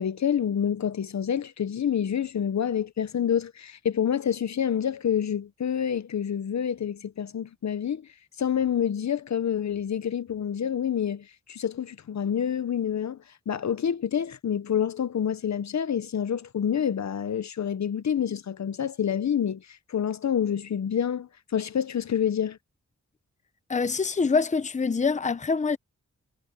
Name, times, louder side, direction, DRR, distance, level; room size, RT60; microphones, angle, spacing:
voice 1, 0.0-8.0 8.4-13.2 13.5-22.6, left 8 dB, 70° left, 0.8 m, -27 dB
voice 2, 23.7-25.8, left 4 dB, 25° left, 0.7 m, -25 dB
wide cardioid pair, 125°, 29 cm